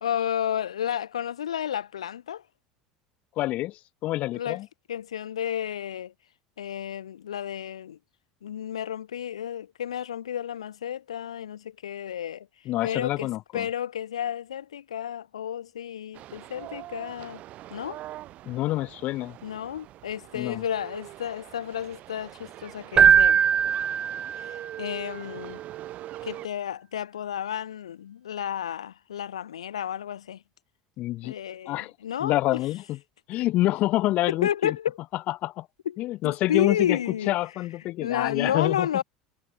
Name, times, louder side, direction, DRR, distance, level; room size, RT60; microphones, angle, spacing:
voice 1, 0.0-2.4 4.3-4.6 4.9-6.1 6.6-8.0 8.4-12.5 12.8-17.4 17.7-18.0 19.4-23.4 24.4-25.6 26.2-30.4 31.2-32.6 33.3-33.4 34.3-35.0 35.8-36.0 36.2-37.4 38.0-39.0, left 9 dB, 75° left, 2.9 m, -31 dB
voice 2, 3.4-4.7 12.7-13.7 18.4-19.4 20.3-20.6 31.0-31.3 31.7-31.9 32.2-33.0 33.3-34.8 35.3-35.7 36.0-37.0 37.3-38.9, left 16 dB, 50° left, 7.4 m, -27 dB
sound 1, 16.1-26.5, right 15 dB, 45° right, 7.4 m, -43 dB
Keyboard (musical), 23.0-24.8, right 7 dB, 30° right, 1.9 m, -20 dB
figure-of-eight pair, 70°, 3 cm